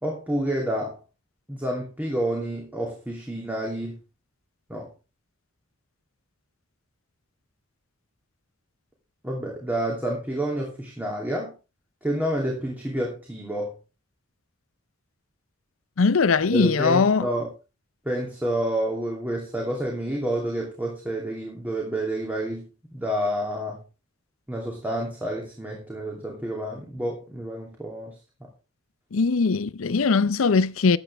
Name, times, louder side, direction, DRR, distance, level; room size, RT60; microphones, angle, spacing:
voice 1, 0.0-1.0 1.5-4.0 4.7-4.9 9.2-11.5 12.0-13.7 16.5-17.5 18.0-23.8 24.5-28.2, right 1 dB, 10° right, 2.8 m, -29 dB
voice 2, 16.0-17.3 29.1-31.0, left 4 dB, 80° left, 0.6 m, -20 dB
14.0 x 9.1 x 3.4 m
head